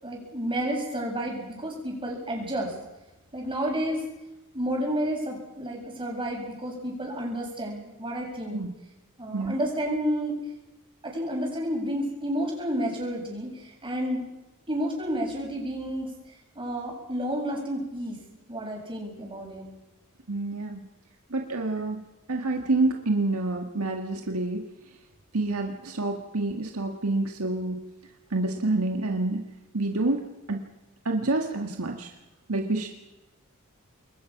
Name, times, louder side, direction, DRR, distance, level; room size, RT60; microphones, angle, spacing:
voice 1, 0.0-2.7 3.3-4.0 4.5-8.6 9.2-10.4 11.0-14.3 14.7-16.1 16.5-18.2 18.5-19.7, equal, 25° right, -1 dB, 7.6 m, -30 dB
voice 2, 20.3-20.8 21.3-22.0 22.3-24.6 25.3-27.8 28.3-29.4 29.7-30.6 31.1-32.1 32.5-32.9, right 2 dB, 70° right, 2 dB, 1.9 m, -28 dB
27.5 x 22.5 x 6.1 m, 0.99 s
head